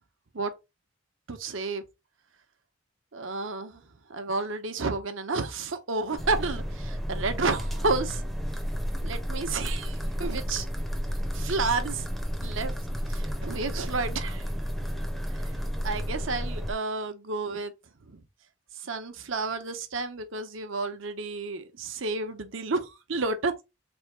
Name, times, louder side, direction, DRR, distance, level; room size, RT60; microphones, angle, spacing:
voice 1, 1.3-1.8 3.1-3.8 4.1-8.2 9.0-10.7 11.3-12.0 12.4-12.7 13.1-14.4 15.8-17.7 18.1-18.2 18.8-23.6, right 3 dB, 75° right, 0.9 m, -31 dB
sound 1, 6.2-16.7, equal, ahead, 0.6 m, -32 dB
3.6 x 3.5 x 3.3 m
head